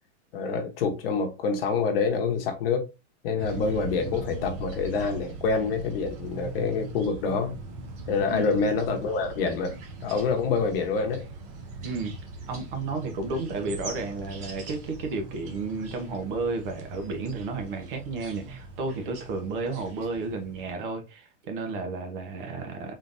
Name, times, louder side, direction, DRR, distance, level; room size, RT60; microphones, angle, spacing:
voice 1, 0.3-2.9 3.2-7.5 8.1-9.7 10.0-11.2, left 5 dB, 50° left, 1.0 m, -26 dB
sound 1, 3.4-20.7, right 3 dB, 20° right, 0.6 m, -41 dB
voice 2, 11.8-12.1 12.5-22.9, right 3 dB, 45° right, 1.1 m, -32 dB
3.8 x 3.3 x 2.6 m
supercardioid pair, 160°, 36 cm